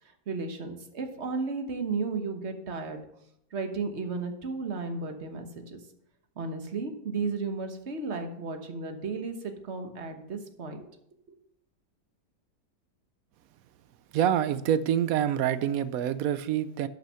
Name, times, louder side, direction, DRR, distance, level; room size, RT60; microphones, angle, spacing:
voice 1, 0.3-3.0 3.5-5.8 6.4-10.8 11.3-11.4, right 4 dB, 45° right, 6 dB, 1.4 m, -34 dB
voice 2, 14.1-16.9, right 10 dB, 65° right, 14 dB, 0.9 m, -26 dB
12.0 x 5.9 x 5.7 m, 0.77 s
omnidirectional pair, 1.8 m